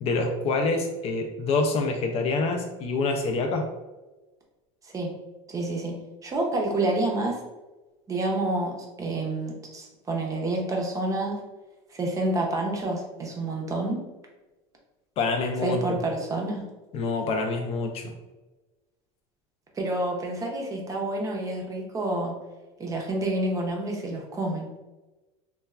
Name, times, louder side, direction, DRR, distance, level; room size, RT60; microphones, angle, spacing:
voice 1, 0.0-3.7 15.2-15.8 16.9-18.0, left 3 dB, 45° left, 4 dB, 0.4 m, -26 dB
voice 2, 5.5-7.4 8.1-11.4 11.9-14.0 15.6-16.7 19.7-22.3 22.8-24.7, right 2 dB, 20° right, 0 dB, 0.5 m, -28 dB
3.0 x 2.2 x 2.3 m, 1.1 s
supercardioid pair, 125°, 15 cm